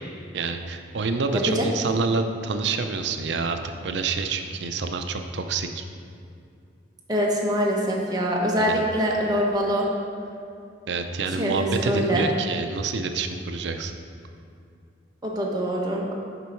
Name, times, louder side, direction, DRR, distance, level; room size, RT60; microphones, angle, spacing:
voice 1, 0.3-5.8 8.6-8.8 10.9-13.9, right 4 dB, 70° right, 7 dB, 0.5 m, -27 dB
voice 2, 1.3-1.6 7.1-9.9 11.3-12.2 15.2-16.1, equal, 20° right, -2 dB, 1.0 m, -24 dB
6.7 x 5.3 x 4.5 m, 2.5 s
head